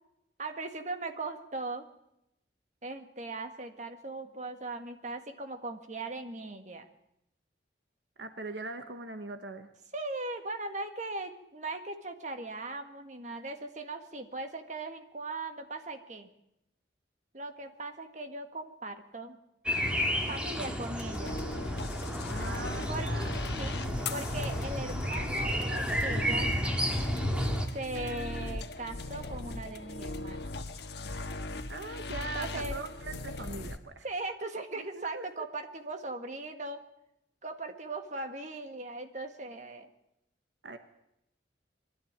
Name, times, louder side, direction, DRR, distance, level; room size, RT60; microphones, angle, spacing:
voice 1, 0.4-1.9 2.8-6.9 9.9-16.3 17.3-19.4 20.3-21.4 22.9-23.1 23.6-23.8 24.1-26.5 27.7-30.4 32.3-32.8 34.0-36.8 37.4-39.9, right 2 dB, 40° right, 6 dB, 1.9 m, -39 dB
voice 2, 8.2-9.7 22.3-23.4 31.7-34.0 34.8-35.3 40.6-40.8, right 3 dB, 70° right, 8 dB, 1.4 m, -41 dB
sound 1, 19.7-27.7, equal, 5° right, 2.1 m, -32 dB
sound 2, 20.9-33.8, left 2 dB, 60° left, 1.5 m, -39 dB
22.0 x 13.0 x 9.0 m, 0.82 s
head